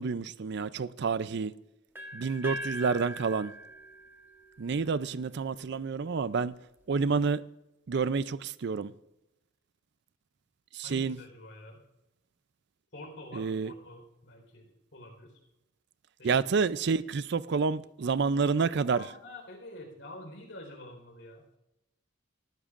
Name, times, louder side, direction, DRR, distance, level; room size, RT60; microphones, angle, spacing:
voice 1, 0.0-1.5 2.1-3.5 4.6-6.5 6.9-7.4 7.9-8.9 10.7-11.2 13.3-13.7 16.2-19.1, right 5 dB, 55° right, 0.4 m, -29 dB
sound 1, 1.9-5.8, equal, 10° right, 1.2 m, -42 dB
voice 2, 10.8-11.8 12.9-15.4 16.2-16.5 18.8-21.5, left 1 dB, 65° left, 4.3 m, -47 dB
18.5 x 13.5 x 2.5 m
head